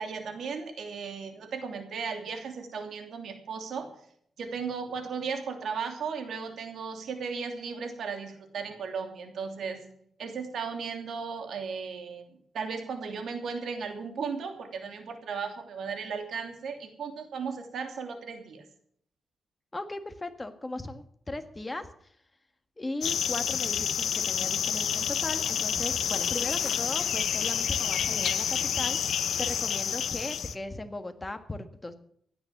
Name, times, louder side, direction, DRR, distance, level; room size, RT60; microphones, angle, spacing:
voice 1, 0.0-3.9 4.4-9.8 10.2-18.6, right 5 dB, 70° right, 5 dB, 3.0 m, -36 dB
voice 2, 19.7-21.9 22.8-29.0 29.4-31.9, left 2 dB, 15° left, 7 dB, 1.6 m, -37 dB
sound 1, 23.0-30.5, left 8 dB, 75° left, 0.9 m, -29 dB
16.0 x 9.9 x 7.3 m, 0.65 s
cardioid pair, 120°, 0 cm